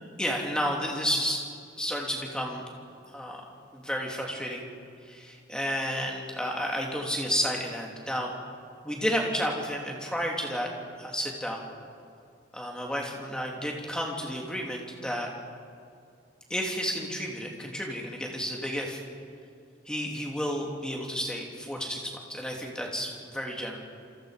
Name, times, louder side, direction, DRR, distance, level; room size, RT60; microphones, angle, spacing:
voice 1, 0.2-1.4 1.8-2.7 3.1-3.5 3.7-4.6 5.1-8.3 8.8-10.7 11.0-11.6 12.5-15.3 16.5-19.0 19.9-23.9, equal, 5° left, -1 dB, 3.0 m, -31 dB
28.0 x 25.5 x 5.2 m, 2.4 s
head